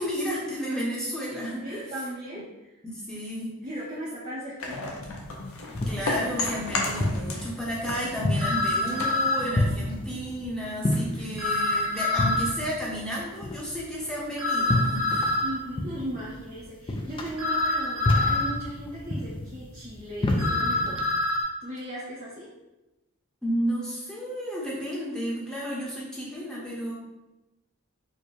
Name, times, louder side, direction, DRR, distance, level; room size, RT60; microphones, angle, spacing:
voice 1, 0.0-1.8 2.8-3.5 5.9-15.3 23.4-26.9, equal, 5° left, -6 dB, 0.8 m, -32 dB
voice 2, 1.6-2.7 3.6-5.0 15.4-21.0 21.6-22.5, right 1 dB, 35° right, -7 dB, 0.7 m, -37 dB
sound 1, 4.6-7.5 7.8-10.2, left 2 dB, 65° left, 0.6 m, -33 dB
sound 2, 5.2-21.1, left 1 dB, 25° left, 0.3 m, -31 dB
sound 3, 8.4-9.5 11.4-12.5 14.4-15.5 17.4-18.5 20.4-21.4, left 2 dB, 75° right, 1.0 m, -26 dB
4.3 x 2.1 x 3.2 m, 1.0 s
head